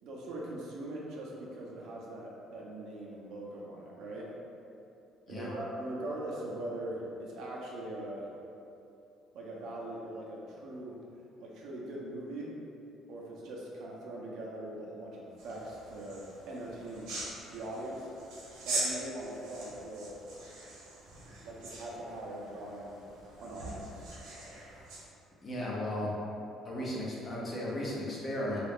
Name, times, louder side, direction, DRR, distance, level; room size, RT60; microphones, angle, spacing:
voice 1, 0.0-4.3 5.3-8.3 9.3-11.0 11.4-12.6 13.1-17.1 17.5-18.1 18.6-20.2 21.4-23.0 23.4-24.1, right 1 dB, 60° right, -3 dB, 0.6 m, -41 dB
sound 1, 15.4-25.1, right 2 dB, 75° right, 0.9 m, -42 dB
voice 2, 25.4-26.2 26.6-28.6, left 1 dB, 30° left, -5 dB, 0.6 m, -35 dB
2.9 x 2.4 x 3.5 m, 2.8 s
cardioid pair, 140°, 0 cm